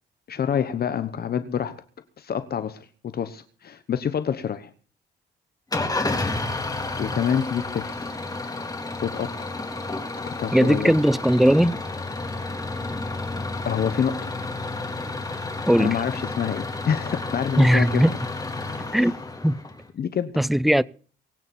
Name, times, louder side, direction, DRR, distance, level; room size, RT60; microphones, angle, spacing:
voice 1, 0.3-1.8 2.2-4.7 7.0-8.2 9.0-9.5 10.3-10.9 13.6-14.3 15.8-18.0 18.9-19.1 20.0-20.4, left 8 dB, 50° left, 1.1 m, -27 dB
Engine starting / Idling, 5.7-19.9, left 2 dB, 20° left, 3.6 m, -31 dB
voice 2, 10.5-11.8 15.7-16.0 17.6-18.1 18.9-19.1 19.4-19.6 20.4-20.8, equal, ahead, 0.5 m, -18 dB
24.0 x 8.7 x 4.4 m
cardioid pair, 90°, 20 cm